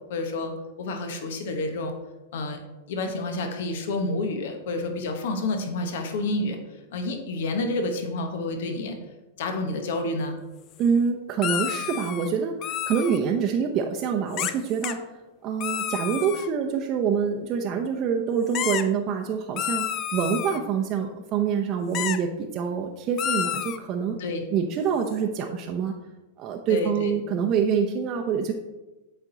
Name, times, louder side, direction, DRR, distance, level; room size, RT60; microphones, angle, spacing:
voice 1, 0.1-0.5 0.8-1.9 2.3-2.6 2.9-6.6 6.9-9.0 9.4-10.4 24.2-24.4 26.7-27.1, left 2 dB, 70° left, 5 dB, 1.1 m, -29 dB
voice 2, 10.8-15.0 15.4-19.9 20.1-24.2 24.5-25.9 26.4-28.5, right 6 dB, 40° right, 3 dB, 0.6 m, -26 dB
sound 1, 11.4-12.3 12.6-13.2 14.3-14.5 14.8-14.9 15.6-16.5 18.5-18.8 19.6-20.6 21.9-22.2 23.2-23.8, left 11 dB, 40° left, 0.5 m, -29 dB
8.1 x 4.5 x 4.0 m, 1.1 s
hypercardioid pair, 110°, 0 cm